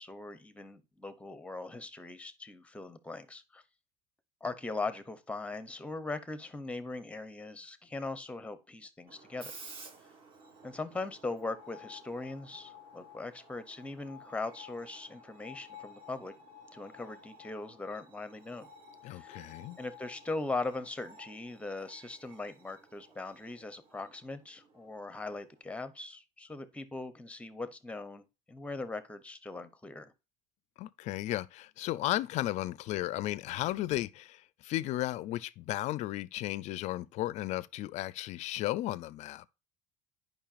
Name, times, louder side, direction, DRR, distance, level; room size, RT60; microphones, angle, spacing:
voice 1, 0.0-3.6 4.4-9.5 10.6-16.3 16.7-18.7 19.1-19.4 19.8-30.1, left 3 dB, 10° left, 0.8 m, -40 dB
Screech, 9.1-25.6, left 1 dB, 40° right, 1.6 m, -54 dB
voice 2, 19.0-19.8 30.8-39.4, left 15 dB, 50° left, 0.4 m, -34 dB
10.0 x 5.4 x 2.5 m
cardioid pair, 140°, 15 cm